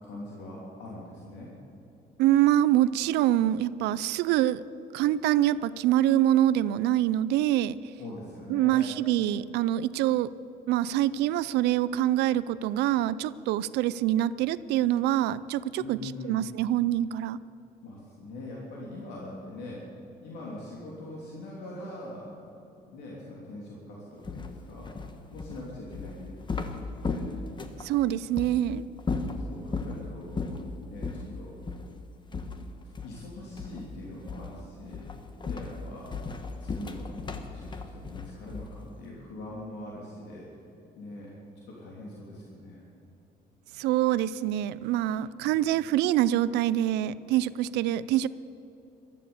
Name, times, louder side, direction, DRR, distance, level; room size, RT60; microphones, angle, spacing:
voice 1, 0.0-1.5 7.9-8.8 15.8-16.4 17.8-19.8 20.2-22.3 22.9-24.9 25.3-27.3 29.2-31.5 33.0-35.0 35.4-36.1 36.6-37.2 37.5-40.5 41.0-41.3 41.7-42.8 45.4-45.5, left 1 dB, 85° left, -4 dB, 3.2 m, -42 dB
voice 2, 2.2-4.6 4.9-7.8 8.5-10.3 10.7-17.4 27.8-28.8 43.8-48.3, right 13 dB, 85° right, 18 dB, 0.5 m, -25 dB
sound 1, 24.2-27.9 28.4-28.5 29.0-30.0 30.4-30.7 31.0-31.3 31.7-31.9 32.3-33.3 33.6-33.9 34.3-34.6 34.9-38.9, left 4 dB, 25° left, 1.3 m, -35 dB
15.0 x 13.0 x 7.1 m, 2.9 s
cardioid pair, 110°, 17 cm